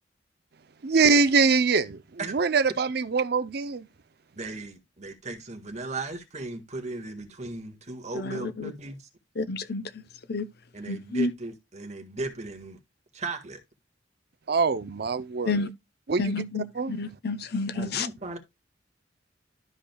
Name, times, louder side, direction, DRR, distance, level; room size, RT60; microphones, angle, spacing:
voice 1, 0.8-3.9 14.5-15.7 16.1-16.4 16.8-16.9, right 4 dB, 60° right, 0.6 m, -24 dB
voice 2, 4.4-9.1 10.7-12.8 13.1-13.6 17.7-18.4, right 3 dB, 40° right, 1.8 m, -36 dB
voice 3, 8.1-8.7 9.4-9.8 10.3-10.5 10.9-11.3 15.5-15.7 16.2-18.1, left 3 dB, 55° left, 0.8 m, -30 dB
12.5 x 5.1 x 2.3 m
head